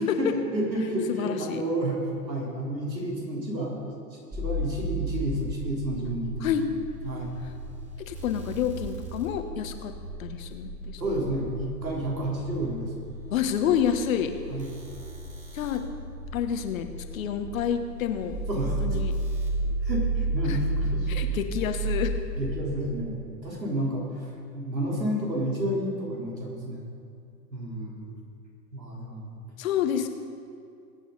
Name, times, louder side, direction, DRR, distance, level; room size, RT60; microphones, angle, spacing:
voice 1, 0.0-6.5 7.0-7.3 11.0-12.9 14.5-14.7 18.5-19.0 19.8-21.3 22.4-26.8 27.5-28.1 28.7-29.3, right 1 dB, 90° right, -3 dB, 4.0 m, -31 dB
voice 2, 1.1-1.6 6.4-6.7 8.1-11.0 13.3-14.3 15.5-15.8 16.3-16.9 17.1-18.4 18.8-19.1 20.5-20.6 21.1-22.1 29.6-30.1, left 8 dB, 55° left, 7 dB, 1.3 m, -28 dB
sound 1, 4.3-22.9, right 1 dB, 15° right, 3.2 m, -33 dB
21.0 x 9.1 x 4.1 m, 2.4 s
figure-of-eight pair, 110°, 49 cm